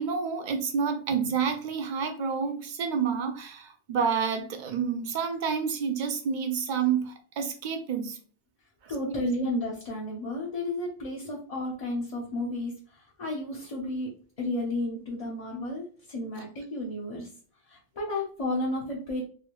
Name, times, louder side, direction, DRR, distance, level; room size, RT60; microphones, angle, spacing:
voice 1, 0.0-8.2 9.1-9.2, right 6 dB, 50° right, 6 dB, 0.7 m, -29 dB
voice 2, 8.9-14.1 14.4-17.3 17.7-19.2, left 1 dB, 35° left, -5 dB, 0.8 m, -32 dB
3.4 x 2.7 x 3.0 m, 0.40 s
omnidirectional pair, 1.1 m